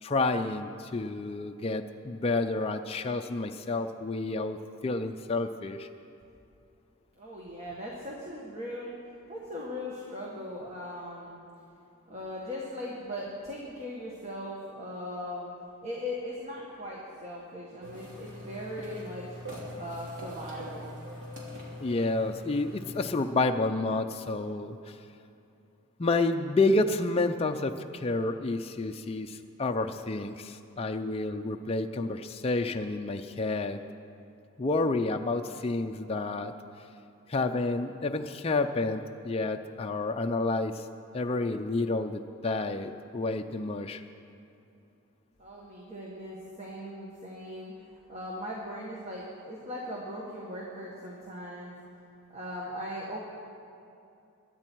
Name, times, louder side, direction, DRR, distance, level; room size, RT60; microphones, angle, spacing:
voice 1, 0.0-4.6 4.8-5.9 21.8-25.0 26.0-33.8 34.6-36.5 37.3-40.9 41.1-44.0, left 2 dB, 25° left, 4 dB, 0.4 m, -29 dB
voice 2, 7.2-8.9 9.3-11.4 12.1-15.5 15.8-19.3 19.8-21.0 45.4-47.7 48.1-51.7 52.3-53.2, left 1 dB, 30° right, -4 dB, 1.6 m, -39 dB
sound 1, 17.8-23.0, left 1 dB, 55° right, 3.0 m, -42 dB
22.5 x 9.7 x 4.6 m, 2.6 s
head